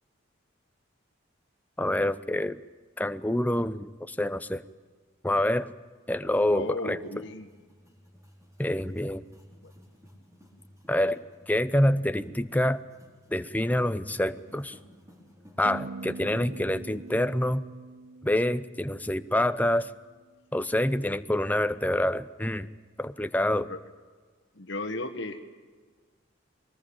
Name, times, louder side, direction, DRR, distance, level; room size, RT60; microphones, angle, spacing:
voice 1, 1.8-2.6 3.0-4.6 5.2-5.7 6.1-7.0 8.6-9.2 10.9-12.8 13.3-14.8 15.6-17.6 18.2-19.9 20.5-22.7 23.0-23.7, left 1 dB, 10° left, 12 dB, 0.6 m, -27 dB
voice 2, 6.5-7.5 9.6-9.7 23.6-23.8 24.5-25.4, left 2 dB, 60° left, 4 dB, 1.6 m, -35 dB
sound 1, 7.0-17.5, equal, 15° right, 4.4 m, -55 dB
sound 2, 15.6-20.0, right 3 dB, 50° right, 0.7 m, -43 dB
22.5 x 19.5 x 8.8 m, 1.4 s
head